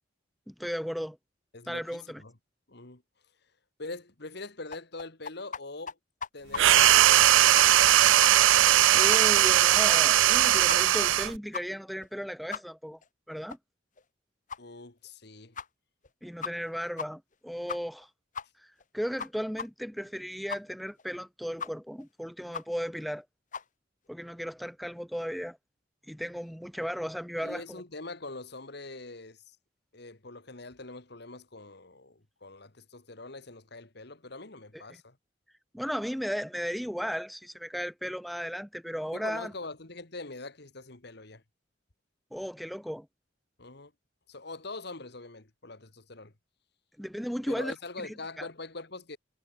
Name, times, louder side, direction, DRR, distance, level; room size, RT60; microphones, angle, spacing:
voice 1, 0.5-1.2 1.7-2.2 8.9-13.0 13.3-13.6 16.2-18.1 18.9-23.3 24.1-25.6 26.1-27.8 34.7-34.8 35.7-39.5 42.3-43.1 47.0-47.7 48.0-48.5, equal, ahead, 2.3 m, -35 dB
voice 2, 1.5-2.3 2.7-3.0 3.8-6.0 6.3-7.9 14.6-15.5 27.4-29.6 29.9-35.2 39.1-41.4 43.6-43.9 44.3-46.3 47.5-49.2, left 3 dB, 60° left, 2.1 m, -43 dB
sound 1, 4.7-5.6 5.9-6.0 6.2-6.9 7.2-7.3 7.6-7.9 8.2-8.3 8.6-8.7 9.1-9.2 9.5-9.6 9.9-10.3 10.7-10.8 11.1-11.2 11.5-11.6 12.0-12.1 12.5-12.6 13.0-13.1 13.5-13.6 14.0-14.1 14.5-14.6 15.1-15.2 15.6-15.7 16.0-16.1 16.4-16.7 17.0-17.1 17.3-17.4 17.7-18.0 18.3-18.5 18.8-18.9 19.2-19.3 19.6-19.7 20.0-20.1 20.5-20.6 21.0-21.1 21.6-21.7 22.0-22.1 22.5-22.6 23.0-23.1 23.5-23.6, left 6 dB, 40° left, 1.3 m, -36 dB
sound 2, 6.6-11.4, right 13 dB, 85° right, 0.4 m, -20 dB
head